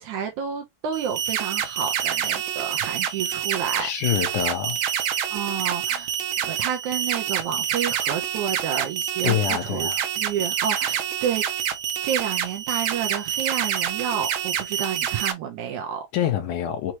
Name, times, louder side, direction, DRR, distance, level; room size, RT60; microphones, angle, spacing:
voice 1, 0.0-3.9 4.2-4.4 5.3-6.1 6.4-11.4 12.0-16.0, right 8 dB, 70° right, 2.0 m, -30 dB
sound 1, 0.9-15.3, right 9 dB, 90° right, 2.6 m, -27 dB
voice 2, 3.8-4.8 9.2-10.0 16.1-16.9, left 10 dB, 70° left, 2.2 m, -25 dB
6.2 x 2.9 x 2.9 m
omnidirectional pair, 4.1 m